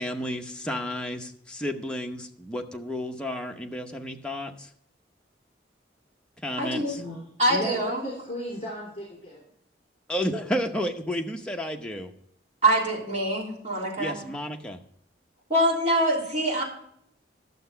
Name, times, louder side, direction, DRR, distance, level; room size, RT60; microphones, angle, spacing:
voice 1, 0.0-4.7 6.4-7.0 10.1-12.1 14.0-14.8, equal, 5° left, 2 dB, 0.8 m, -32 dB
voice 2, 6.6-7.0 7.4-8.1 12.6-14.2 15.5-16.6, right 1 dB, 40° right, -3 dB, 3.4 m, -24 dB
voice 3, 7.5-9.4, left 1 dB, 35° left, -4 dB, 3.3 m, -35 dB
11.5 x 6.8 x 5.6 m, 0.70 s
head